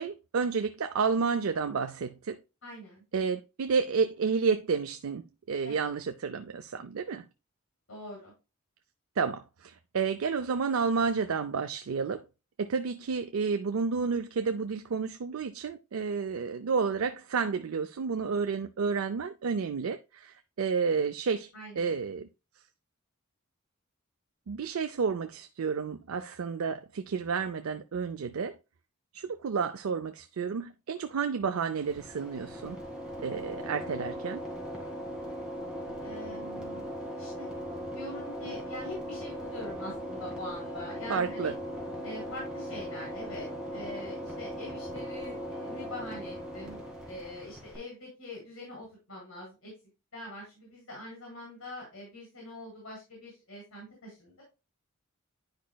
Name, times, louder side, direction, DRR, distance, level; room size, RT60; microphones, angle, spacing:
voice 1, 0.0-2.4 3.1-7.2 9.2-12.2 12.6-21.5 21.8-22.3 24.5-28.5 29.1-32.8 33.2-34.4 41.1-41.5, right 5 dB, 85° right, 0.5 m, -30 dB
voice 2, 2.6-3.0 5.6-5.9 7.9-8.3 21.5-21.9 36.0-36.9 37.2-37.5 37.8-41.5 42.0-46.8 47.1-49.7 50.1-54.4, left 1 dB, 75° left, 3.4 m, -43 dB
sound 1, 31.8-47.8, equal, 5° right, 2.0 m, -39 dB
10.5 x 5.1 x 2.2 m
head